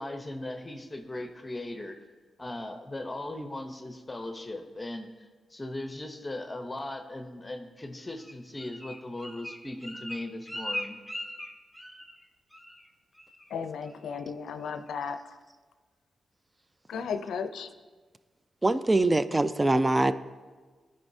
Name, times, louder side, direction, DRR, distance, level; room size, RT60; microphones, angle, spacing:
voice 1, 0.0-2.0 2.4-11.0, left 1 dB, 25° left, 5 dB, 0.8 m, -38 dB
Bird, 8.2-12.2 12.5-12.9 13.2-13.5 13.8-14.2 14.6-14.7, left 1 dB, 5° right, 1.5 m, -40 dB
voice 2, 13.5-15.3 16.9-17.7, left 6 dB, 85° left, 9 dB, 0.5 m, -35 dB
voice 3, 18.6-20.1, right 2 dB, 25° right, 13 dB, 0.4 m, -23 dB
15.0 x 5.4 x 2.7 m, 1.4 s
cardioid pair, 55°, 0 cm